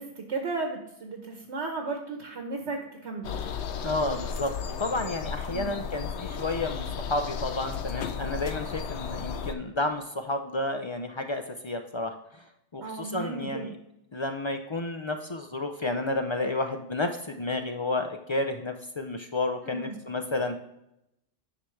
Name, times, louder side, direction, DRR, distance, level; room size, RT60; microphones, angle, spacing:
voice 1, 0.0-3.3 5.5-5.8 12.8-13.7 19.6-20.0, right 3 dB, 65° right, 3 dB, 1.2 m, -35 dB
sound 1, 3.2-9.6, left 6 dB, 65° left, 0.9 m, -34 dB
voice 2, 3.8-13.8 14.1-20.6, left 2 dB, 50° left, 6 dB, 0.3 m, -31 dB
9.7 x 5.8 x 3.2 m, 0.83 s
omnidirectional pair, 1.3 m